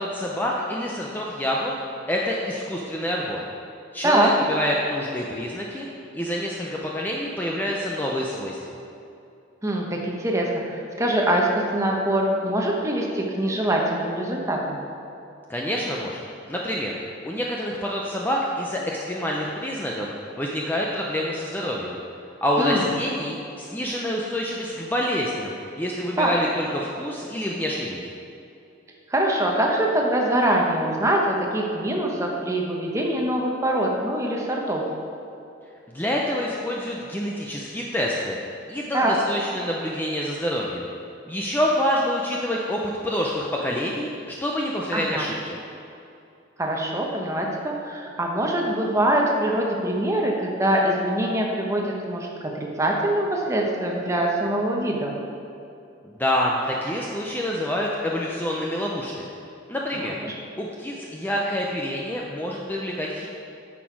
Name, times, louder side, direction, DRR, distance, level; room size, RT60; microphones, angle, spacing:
voice 1, 0.0-1.7 2.1-3.5 3.9-5.9 6.1-8.6 15.5-16.2 16.5-16.9 17.2-20.1 20.4-22.0 22.4-28.0 35.9-38.4 38.7-40.9 41.3-45.6 56.0-59.3 59.7-60.1 60.6-63.3, left 1 dB, 10° left, -3 dB, 0.5 m, -27 dB
voice 2, 9.6-14.8 22.6-22.9 26.2-26.3 29.1-34.8 38.9-39.2 44.9-45.2 46.6-55.1 60.0-60.3, right 1 dB, 15° right, -1 dB, 1.0 m, -24 dB
9.7 x 6.2 x 4.6 m, 2.7 s
head